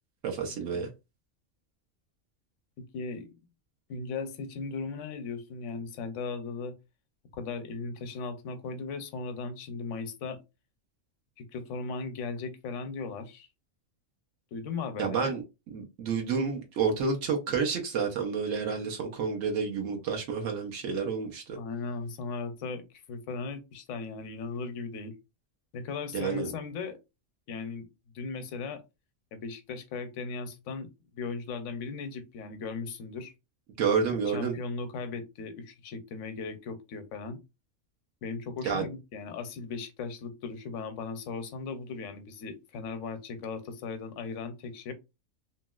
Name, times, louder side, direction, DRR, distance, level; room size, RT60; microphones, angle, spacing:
voice 1, 0.2-0.9 15.0-15.4 15.7-21.6 26.1-26.5 33.8-34.5 38.6-38.9, right 5 dB, 80° right, 1.0 m, -29 dB
voice 2, 2.9-3.3 3.9-6.7 7.3-10.4 11.4-13.5 14.5-15.4 21.5-25.1 25.7-27.0 27.5-27.9 28.1-28.8 29.3-30.9 31.1-33.3 34.3-37.4 38.2-44.9, left 4 dB, 75° left, 0.9 m, -37 dB
2.9 x 2.8 x 2.3 m
omnidirectional pair, 1.3 m